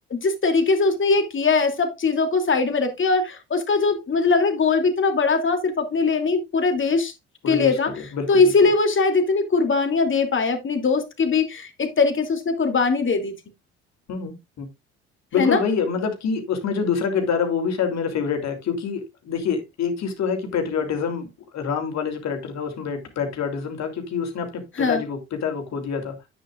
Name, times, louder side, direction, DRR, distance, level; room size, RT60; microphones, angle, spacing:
voice 1, 0.1-7.1 7.5-7.9 8.3-13.3 15.4-15.6 24.8-25.0, left 4 dB, 40° left, 2.9 m, -21 dB
voice 2, 7.4-8.4 14.1-14.7 15.3-21.3 21.5-26.1, left 6 dB, 55° left, 3.2 m, -26 dB
10.5 x 9.1 x 2.5 m
hypercardioid pair, 50°, 31 cm